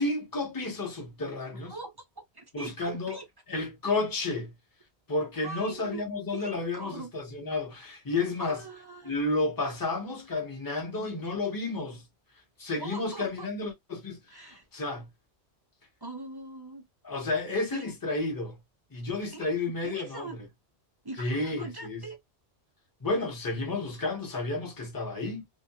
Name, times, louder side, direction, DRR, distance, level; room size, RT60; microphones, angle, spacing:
voice 1, 0.0-1.7 2.5-3.2 3.5-4.5 5.1-8.6 9.0-12.0 12.6-15.1 17.0-18.6 18.9-20.3 21.2-22.0 23.0-25.5, left 2 dB, 20° left, 0.7 m, -31 dB
voice 2, 1.5-3.2 5.4-6.0 6.3-7.1 8.4-9.2 11.0-11.2 12.8-13.5 14.3-14.7 16.0-16.9 17.7-17.9 19.3-20.4 21.0-22.2, right 3 dB, 35° right, 0.4 m, -42 dB
2.3 x 2.1 x 2.7 m
omnidirectional pair, 1.2 m